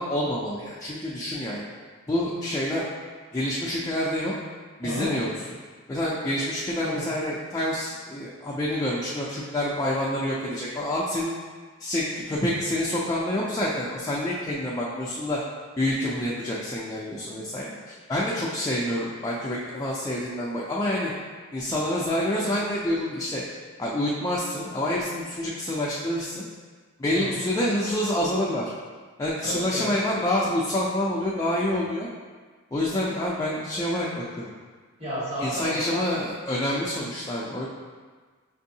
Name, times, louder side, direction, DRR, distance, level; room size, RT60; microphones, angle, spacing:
voice 1, 0.0-1.6 2.1-2.8 3.3-4.3 4.8-5.3 5.9-11.3 11.8-15.4 15.8-21.1 21.5-23.4 23.8-26.5 27.0-28.7 29.2-32.1 32.7-34.2 35.4-37.7, left 1 dB, 15° left, -6 dB, 0.3 m, -27 dB
voice 2, 27.1-27.5 29.4-29.9 35.0-36.0, equal, 30° right, -12 dB, 1.5 m, -32 dB
5.3 x 2.6 x 2.7 m, 1.5 s
head